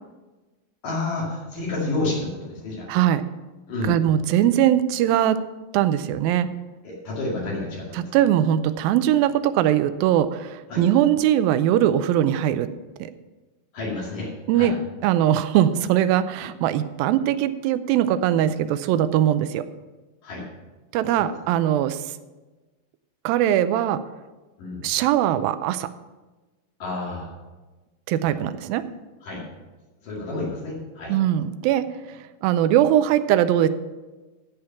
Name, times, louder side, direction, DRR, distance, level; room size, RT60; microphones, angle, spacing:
voice 1, 0.8-2.9 3.7-3.9 6.8-8.1 10.7-10.9 13.7-14.7 20.2-20.4 21.2-21.3 24.6-24.8 26.8-27.3 28.2-28.5 29.2-29.4 30.0-31.1, left 2 dB, 65° left, -5 dB, 3.8 m, -30 dB
voice 2, 2.9-3.2 3.8-5.4 5.7-6.5 7.9-12.7 13.0-13.1 14.5-14.8 15.0-19.6 20.9-22.1 23.2-24.0 24.8-25.9 28.1-28.8 31.1-33.7, right 11 dB, 80° right, 13 dB, 2.3 m, -21 dB
15.0 x 5.1 x 5.7 m, 1.2 s
omnidirectional pair, 4.3 m